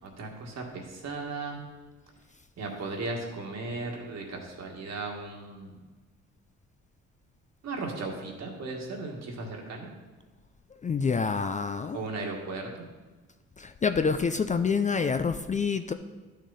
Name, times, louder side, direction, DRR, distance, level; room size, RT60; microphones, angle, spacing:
voice 1, 0.2-1.6 2.6-5.7 7.6-9.9 11.9-12.7, right 3 dB, 60° right, 1 dB, 2.1 m, -36 dB
voice 2, 10.8-12.0 13.6-15.9, left 5 dB, 25° left, 9 dB, 0.4 m, -27 dB
11.5 x 6.4 x 4.1 m, 1.3 s
cardioid pair, 90°, 30 cm